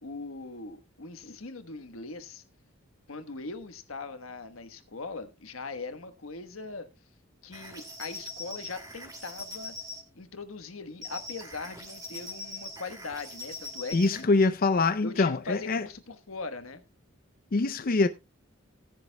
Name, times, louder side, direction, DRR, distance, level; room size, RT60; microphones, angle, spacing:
voice 1, 0.0-2.4 3.1-6.9 7.4-9.8 10.1-14.2 15.0-16.8, left 3 dB, 90° left, 1.3 m, -40 dB
sound 1, 7.5-10.0 11.0-14.3, left 1 dB, 20° right, 2.4 m, -42 dB
voice 2, 13.9-15.8 17.5-18.1, left 3 dB, 45° left, 0.5 m, -24 dB
16.5 x 10.5 x 2.2 m
head